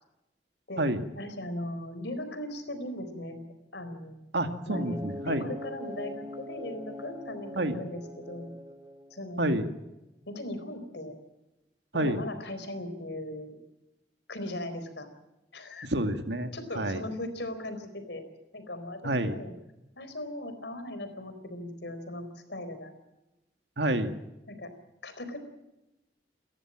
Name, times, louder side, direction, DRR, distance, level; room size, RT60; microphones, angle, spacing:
voice 1, 1.1-3.4 3.7-4.2 4.7-8.5 9.1-9.6 10.3-11.1 11.9-13.5 14.3-15.1 15.5-15.9 16.5-18.2 18.5-19.5 20.0-22.9 24.5-24.7 25.0-25.4, left 1 dB, 70° left, 9 dB, 4.3 m, -38 dB
voice 2, 4.3-5.5 7.6-7.8 9.4-9.7 11.9-12.2 15.8-17.0 19.0-19.4 23.8-24.1, right 1 dB, 70° right, 7 dB, 2.0 m, -29 dB
sound 1, 4.7-9.4, equal, 20° right, 1.7 m, -42 dB
30.0 x 14.0 x 7.5 m, 0.97 s
head